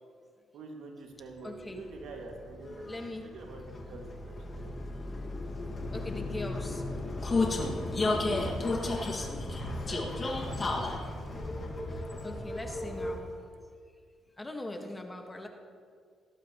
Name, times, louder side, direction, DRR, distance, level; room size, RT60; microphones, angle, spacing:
voice 1, 0.5-4.7 8.8-10.9, right 3 dB, 75° right, 1 dB, 2.2 m, -46 dB
voice 2, 1.4-1.9 2.8-3.4 5.9-6.9 11.9-13.3 14.4-15.5, left 2 dB, 15° left, 3 dB, 1.6 m, -41 dB
Vehicle, 1.6-13.4, left 2 dB, 35° left, 2.0 m, -34 dB
18.5 x 11.5 x 3.1 m, 2.1 s
cardioid pair, 90°, 0 cm